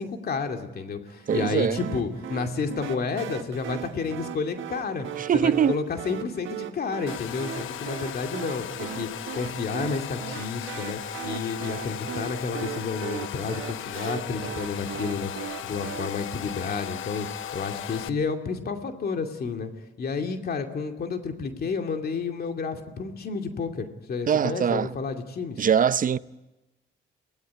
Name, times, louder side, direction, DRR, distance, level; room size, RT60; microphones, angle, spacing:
voice 1, 0.0-5.1 5.3-19.7 20.0-25.6, left 5 dB, 50° left, 2.5 m, -31 dB
voice 2, 1.3-1.8 5.2-5.8 24.3-24.9 25.6-26.2, right 8 dB, 45° right, 0.7 m, -22 dB
sound 1, 1.3-16.1, right 11 dB, 80° right, 1.3 m, -38 dB
Domestic sounds home sounds, 7.1-18.1, left 10 dB, 80° left, 1.0 m, -37 dB
23.0 x 18.0 x 9.5 m
cardioid pair, 90°, 20 cm